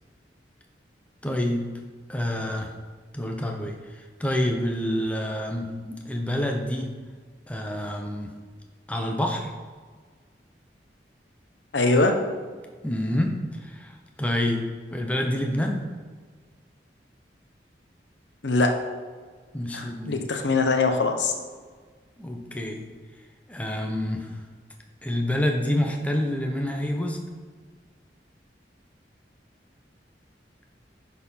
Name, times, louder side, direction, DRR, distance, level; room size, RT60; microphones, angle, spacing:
voice 1, 1.2-1.7 2.1-2.7 3.1-6.9 7.5-8.3 8.9-9.5 12.8-15.9 19.5-20.2 22.2-22.9 23.5-24.4 25.0-27.2, left 1 dB, 10° left, 2 dB, 0.8 m, -28 dB
voice 2, 11.7-12.1 18.4-18.7 19.7-21.3, left 3 dB, 85° left, 4 dB, 1.0 m, -22 dB
10.0 x 4.4 x 5.6 m, 1.5 s
head